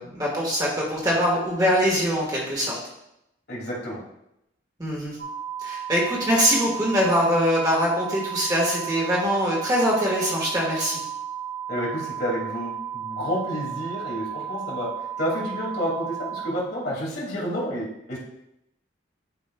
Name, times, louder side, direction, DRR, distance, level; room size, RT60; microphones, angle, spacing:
voice 1, 0.0-2.8 4.8-5.2 5.6-11.0, equal, 20° right, -3 dB, 1.6 m, -23 dB
voice 2, 3.5-4.0 11.7-14.9 15.2-18.2, equal, 60° left, -5 dB, 2.3 m, -29 dB
sound 1, 5.2-16.5, right 9 dB, 75° right, 2.2 m, -34 dB
11.0 x 5.2 x 2.3 m, 0.83 s
head